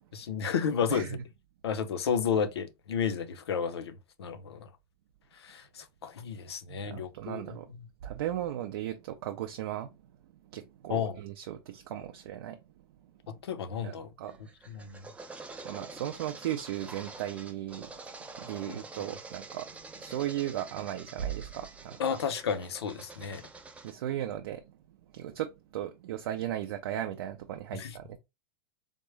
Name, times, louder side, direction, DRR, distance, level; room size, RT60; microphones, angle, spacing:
voice 1, 0.1-1.1 1.6-4.7 5.4-7.6 10.9-11.2 13.3-14.1 14.7-15.1 18.7-18.8 22.0-23.4 27.7-27.9, left 7 dB, 90° left, 0.5 m, -32 dB
voice 2, 0.9-1.2 6.7-7.7 8.0-10.0 10.5-12.6 13.8-14.4 15.6-17.9 18.4-22.0 23.8-24.6 25.1-28.2, right 12 dB, 70° right, 0.5 m, -36 dB
sound 1, 14.3-23.9, right 3 dB, 10° right, 0.4 m, -47 dB
3.5 x 2.1 x 3.2 m
hypercardioid pair, 115°, 13 cm